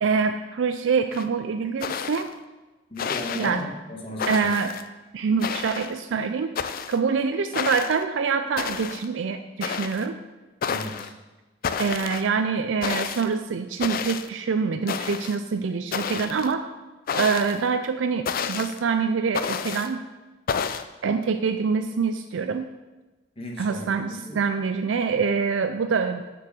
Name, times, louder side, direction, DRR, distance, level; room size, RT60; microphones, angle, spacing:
voice 1, 0.0-2.3 3.4-3.6 4.3-4.7 5.1-10.2 11.8-16.7 17.1-20.0 21.0-22.7 23.6-26.2, right 5 dB, 80° right, 8 dB, 0.4 m, -25 dB
sound 1, 1.1-1.2 1.8-2.3 3.0-3.5 4.2-4.8 5.4-6.0 6.6-7.0 7.5-8.0 8.6-9.1 9.6-10.0 10.6-11.1 11.6-12.3 12.8-13.3 13.8-14.3 14.9-15.4 15.9-16.5 17.1-17.6 18.3-18.8 19.3-19.9 20.5-20.8, left 7 dB, 50° left, 0.4 m, -30 dB
voice 2, 2.9-4.4 10.6-11.1 23.4-24.4, left 1 dB, 30° left, 0 dB, 1.4 m, -35 dB
6.7 x 4.7 x 6.6 m, 1.2 s
head